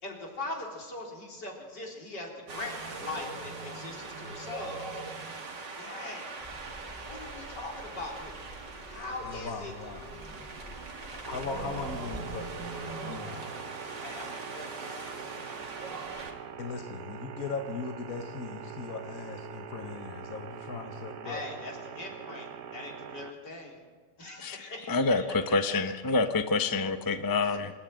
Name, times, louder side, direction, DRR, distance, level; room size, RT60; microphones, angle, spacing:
voice 1, 0.0-4.8 5.8-6.3 7.0-8.4 8.9-9.7 14.0-15.6 21.2-23.8 24.2-25.3 27.4-27.6, left 2 dB, 80° left, -1 dB, 4.6 m, -41 dB
Wind, 2.5-16.3, right 3 dB, 85° right, 2.9 m, -41 dB
sound 1, 6.4-12.5, right 1 dB, 5° right, 5.9 m, -49 dB
voice 2, 9.2-10.1 11.2-13.5 16.6-21.4, left 4 dB, 55° left, 5 dB, 1.7 m, -38 dB
sound 2, 11.2-23.3, right 8 dB, 60° right, 1.3 m, -44 dB
voice 3, 24.4-27.7, left 3 dB, 15° left, 9 dB, 0.7 m, -27 dB
26.0 x 14.5 x 9.2 m, 1.5 s
omnidirectional pair, 1.8 m